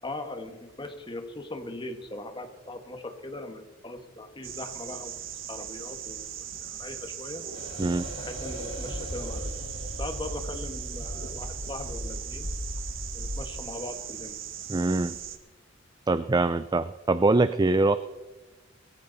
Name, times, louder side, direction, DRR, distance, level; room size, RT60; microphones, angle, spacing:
voice 1, 0.0-5.2 5.5-6.3 6.6-7.5 8.2-9.5 10.0-12.5 13.1-14.3, left 2 dB, 25° left, 6 dB, 1.6 m, -39 dB
sound 1, 4.4-15.4, right 9 dB, 90° right, 1.5 m, -39 dB
sound 2, 7.5-13.6, equal, 75° left, 3.6 m, -37 dB
voice 2, 14.7-15.2 16.1-18.0, right 2 dB, 20° right, 13 dB, 0.4 m, -23 dB
20.5 x 14.5 x 4.1 m, 1.2 s
head